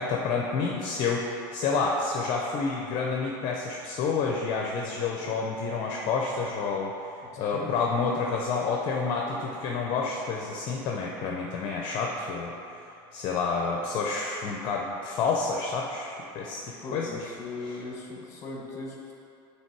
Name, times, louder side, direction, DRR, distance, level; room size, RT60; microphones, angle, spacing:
voice 1, 0.0-12.8 13.1-17.3 17.6-17.8, left 4 dB, 45° left, -1 dB, 0.5 m, -29 dB
voice 2, 7.2-7.7 16.8-19.1, left 3 dB, 25° left, -2 dB, 1.1 m, -39 dB
7.4 x 3.2 x 4.6 m, 2.7 s
supercardioid pair, 145°, 12 cm